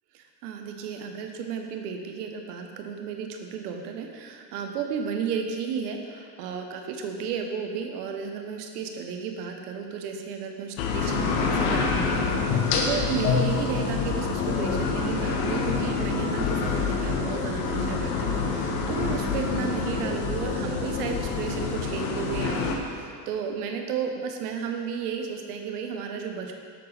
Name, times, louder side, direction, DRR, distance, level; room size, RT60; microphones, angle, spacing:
voice 1, 0.1-26.6, right 6 dB, 85° right, 4 dB, 1.0 m, -33 dB
sound 1, 10.8-22.7, left 4 dB, 80° left, 1.1 m, -26 dB
9.1 x 7.0 x 3.3 m, 2.2 s
hypercardioid pair, 70°, 45 cm